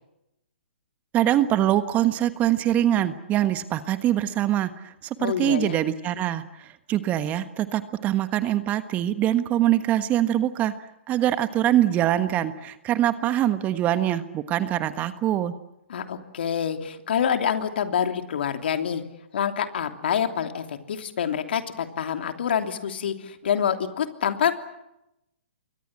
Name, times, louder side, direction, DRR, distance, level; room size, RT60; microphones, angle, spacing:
voice 1, 1.1-10.7 11.1-15.5, right 12 dB, 25° right, 11 dB, 1.4 m, -23 dB
voice 2, 5.2-5.7 15.9-19.0 19.3-24.5, left 8 dB, 60° left, 6 dB, 3.0 m, -26 dB
29.0 x 23.5 x 7.6 m, 0.89 s
hypercardioid pair, 130°, 6 cm